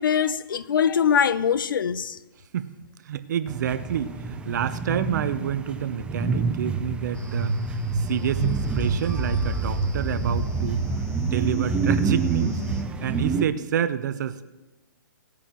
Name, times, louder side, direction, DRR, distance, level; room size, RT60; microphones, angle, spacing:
voice 1, 0.0-2.2, left 7 dB, 75° left, 0.6 m, -22 dB
voice 2, 3.0-7.5 7.9-10.8 11.2-12.6 13.0-14.4, right 9 dB, 55° right, 0.8 m, -28 dB
sound 1, 3.5-13.5, right 5 dB, 10° right, 0.6 m, -29 dB
sound 2, 7.1-12.8, right 3 dB, 10° left, 1.4 m, -28 dB
17.5 x 8.5 x 3.0 m
hypercardioid pair, 140°, 11 cm